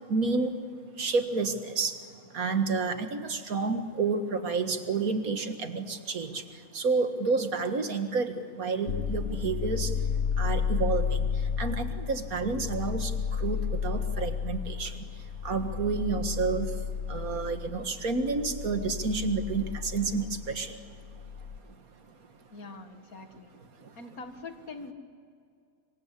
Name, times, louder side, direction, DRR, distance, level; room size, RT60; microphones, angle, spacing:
voice 1, 0.1-0.5 0.9-10.0 10.4-21.0 22.0-22.2 23.8-24.0, right 4 dB, 80° right, 7 dB, 2.1 m, -30 dB
sound 1, 8.9-21.6, left 6 dB, 60° left, 1.1 m, -32 dB
voice 2, 22.5-23.5 24.0-24.9, left 3 dB, 80° left, 7 dB, 2.3 m, -43 dB
26.0 x 24.5 x 8.4 m, 2.3 s
omnidirectional pair, 1.5 m